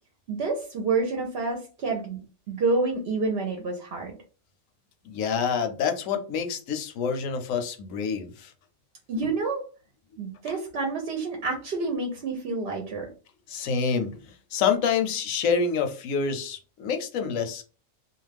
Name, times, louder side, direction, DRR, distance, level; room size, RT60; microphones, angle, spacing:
voice 1, 0.3-2.2 2.5-4.1 9.1-9.6 10.2-13.1, right 3 dB, 60° right, 2 dB, 0.7 m, -28 dB
voice 2, 5.0-8.5 13.5-14.2 14.5-17.7, left 6 dB, 75° left, 6 dB, 1.0 m, -27 dB
2.4 x 2.3 x 3.2 m, 0.35 s
omnidirectional pair, 1.4 m